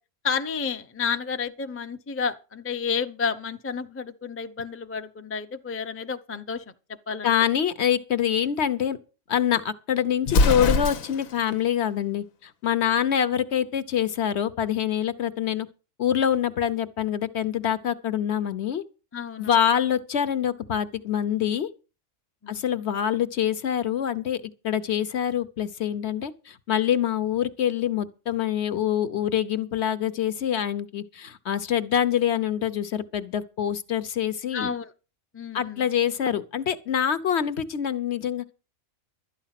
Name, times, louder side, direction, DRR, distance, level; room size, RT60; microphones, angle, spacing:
voice 1, 0.2-6.6 7.1-7.3 19.1-19.6 22.4-22.6 34.5-34.9 35.3-35.9, left 6 dB, 15° left, 0.5 m, -31 dB
voice 2, 7.2-9.0 9.3-15.7 16.0-18.8 19.4-21.7 22.5-34.7 35.5-38.6, left 9 dB, 55° left, 1.1 m, -25 dB
Explosion, 10.2-11.4, left 3 dB, 85° left, 1.3 m, -22 dB
12.5 x 9.8 x 5.8 m
omnidirectional pair, 1.4 m